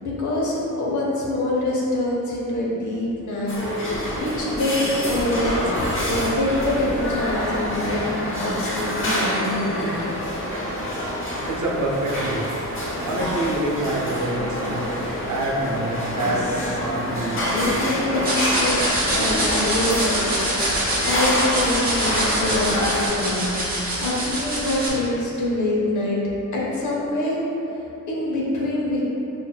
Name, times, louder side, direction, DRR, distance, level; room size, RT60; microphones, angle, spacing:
voice 1, 0.0-3.5 4.2-5.7 6.1-9.9 16.1-16.4 17.4-18.8 19.1-26.2 26.5-27.4 27.7-29.0, left 1 dB, 75° left, -5 dB, 0.9 m, -25 dB
sound 1, 3.5-23.1, equal, 45° left, 0.7 m, -27 dB
voice 2, 11.5-12.6 13.0-14.9 15.3-17.8, right 1 dB, 90° right, -2 dB, 0.7 m, -26 dB
sound 2, 18.2-24.9, right 1 dB, 30° right, 0.8 m, -25 dB
5.7 x 2.6 x 2.3 m, 2.9 s
wide cardioid pair, 175°, 30 cm